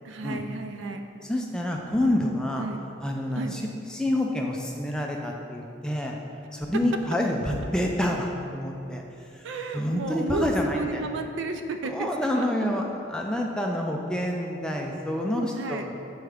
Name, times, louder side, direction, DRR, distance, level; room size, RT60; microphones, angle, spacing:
voice 1, 0.0-1.0 2.6-2.8 3.3-3.6 9.4-11.9 12.3-12.4 15.4-15.9, right 3 dB, 70° right, 6 dB, 0.4 m, -33 dB
voice 2, 1.2-2.7 3.0-3.6 3.9-6.2 6.5-9.0 9.3-9.5 9.7-11.1 11.8-15.9, left 1 dB, 5° left, 0 dB, 0.3 m, -28 dB
6.4 x 4.6 x 3.4 m, 2.7 s
head